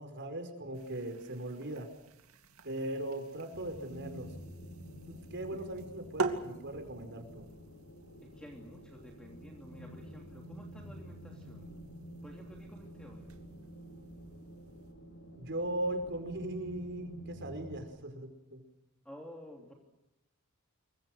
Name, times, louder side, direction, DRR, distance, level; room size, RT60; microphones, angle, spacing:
voice 1, 0.0-1.9 2.6-4.3 5.1-7.5 15.3-18.6, right 1 dB, 55° right, 7 dB, 5.0 m, -39 dB
sound 1, 0.7-14.9, right 4 dB, 80° right, 2.5 m, -45 dB
sound 2, 3.5-17.8, equal, 90° left, 4.4 m, -49 dB
voice 2, 8.2-11.7 12.2-13.3 19.0-19.7, equal, 5° left, 1 dB, 3.0 m, -52 dB
28.0 x 24.0 x 6.5 m, 0.88 s
head